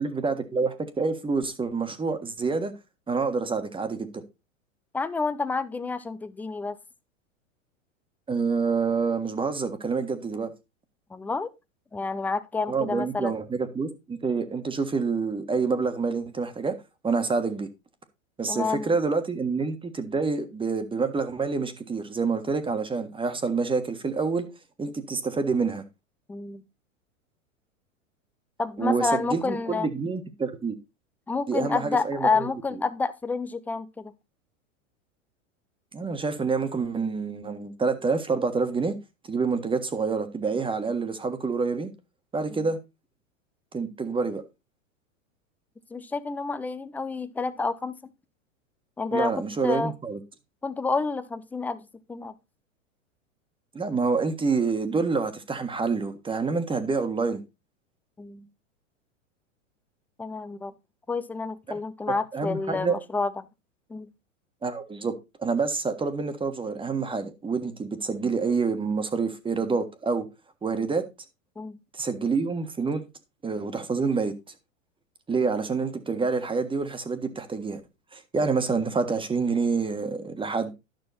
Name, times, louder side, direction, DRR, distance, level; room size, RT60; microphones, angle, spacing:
voice 1, 0.0-2.7 3.1-4.2 8.3-10.5 12.7-16.7 17.0-17.7 18.4-24.5 24.8-25.8 28.8-30.7 31.5-32.5 35.9-38.9 39.3-41.9 42.3-42.8 43.7-44.4 49.1-50.2 53.7-57.4 62.3-63.0 64.6-65.1 65.4-70.3 70.6-71.0 71.9-73.0 73.4-74.3 75.3-77.8 78.1-80.7, right 4 dB, 15° right, 1.5 m, -27 dB
voice 2, 4.9-6.8 11.1-11.5 11.9-13.3 18.5-18.9 26.3-26.6 28.6-29.9 31.3-34.1 42.5-42.7 45.9-48.1 49.0-49.9 50.6-52.3 58.2-58.5 60.2-60.7 61.1-63.4 63.9-64.1 71.6-71.8, left 4 dB, 5° left, 0.4 m, -29 dB
12.0 x 6.1 x 4.1 m
hypercardioid pair, 115°, 40 cm